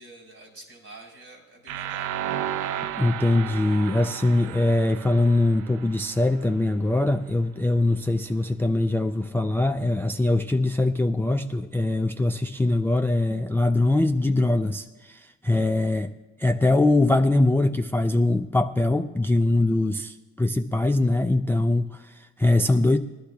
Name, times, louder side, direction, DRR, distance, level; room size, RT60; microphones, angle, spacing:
voice 1, 0.0-2.1, right 3 dB, 55° right, 1 dB, 4.5 m, -46 dB
sound 1, 1.7-6.5, right 10 dB, 85° right, 0.5 m, -33 dB
voice 2, 3.0-16.1 16.4-23.0, left 2 dB, 5° left, 7 dB, 0.3 m, -22 dB
21.0 x 11.5 x 2.3 m, 1.2 s
cardioid pair, 90°, 30 cm